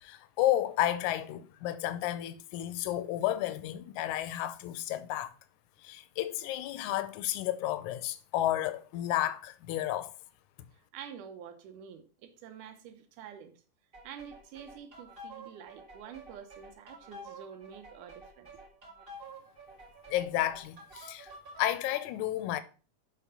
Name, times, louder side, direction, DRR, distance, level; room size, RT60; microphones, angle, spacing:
voice 1, 0.0-5.3 5.8-10.1 20.1-21.3 21.6-22.6, left 13 dB, 75° left, 1.9 m, -32 dB
voice 2, 10.9-13.5 14.0-18.5, right 8 dB, 75° right, 2.4 m, -48 dB
sound 1, 13.9-21.7, right 2 dB, 25° right, 1.3 m, -50 dB
7.4 x 4.3 x 5.4 m
omnidirectional pair, 3.9 m